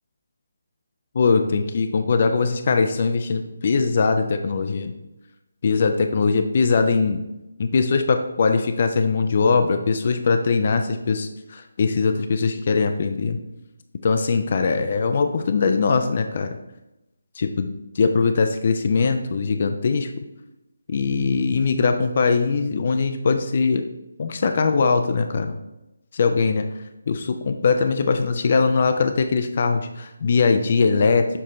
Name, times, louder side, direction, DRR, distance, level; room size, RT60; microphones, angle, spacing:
voice 1, 1.1-4.9 5.6-7.2 7.6-13.4 14.0-16.6 17.4-20.1 20.9-23.8 24.2-25.6 26.1-26.7 27.1-31.3, left 4 dB, 40° left, 7 dB, 0.4 m, -21 dB
6.7 x 3.6 x 4.2 m, 0.94 s
figure-of-eight pair, 150°, 0 cm